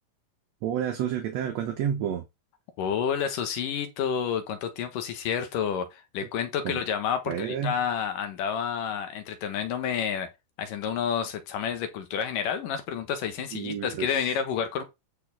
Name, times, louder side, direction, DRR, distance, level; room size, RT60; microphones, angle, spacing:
voice 1, 0.6-2.3 6.6-6.8 7.3-7.7 13.5-14.4, right 9 dB, 65° right, 1.9 m, -30 dB
voice 2, 2.8-10.3 10.6-14.8, left 7 dB, 85° left, 3.1 m, -29 dB
11.5 x 4.3 x 4.2 m
omnidirectional pair, 3.7 m